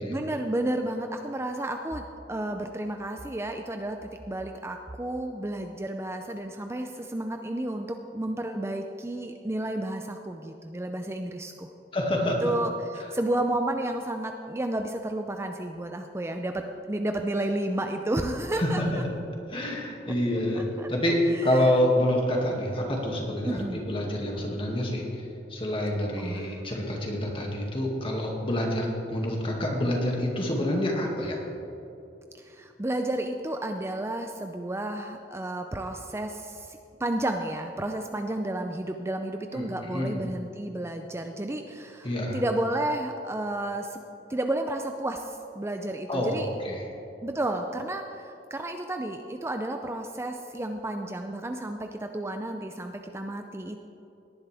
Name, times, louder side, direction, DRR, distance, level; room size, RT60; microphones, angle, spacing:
voice 1, 0.1-11.7 12.4-19.0 20.5-21.7 23.5-23.8 26.2-26.6 32.4-44.0 44.3-46.5 47.2-53.8, right 1 dB, 15° right, 5 dB, 0.5 m, -32 dB
voice 2, 11.9-12.4 18.6-19.1 19.5-25.0 25.5-31.4 39.5-40.2 42.0-42.4 46.1-46.9, left 1 dB, 30° left, -1 dB, 2.2 m, -27 dB
18.5 x 10.5 x 3.5 m, 2.9 s
head